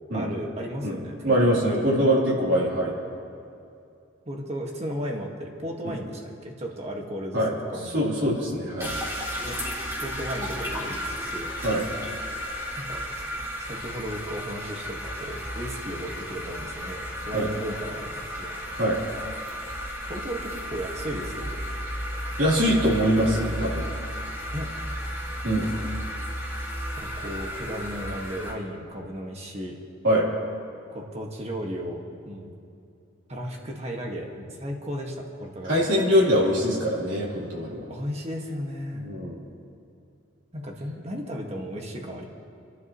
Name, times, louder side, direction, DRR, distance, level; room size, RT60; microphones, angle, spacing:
voice 1, 0.1-1.9 4.2-7.4 7.7-8.0 9.4-9.6 10.0-11.5 12.8-13.0 13.7-18.6 20.1-21.6 24.5-24.8 27.0-29.8 30.9-32.5 33.3-35.9 37.9-39.2 40.5-42.2, equal, 30° right, 0 dB, 1.7 m, -35 dB
voice 2, 1.2-2.9 5.8-6.0 7.3-7.5 7.9-8.9 11.6-11.8 17.3-17.5 18.7-19.0 22.4-23.9 25.4-25.7 30.0-30.3 35.6-37.9 39.0-39.4, equal, 75° right, -5 dB, 3.4 m, -23 dB
sound 1, 8.8-28.5, equal, 15° right, 2.9 m, -33 dB
28.5 x 12.0 x 3.1 m, 2.5 s
head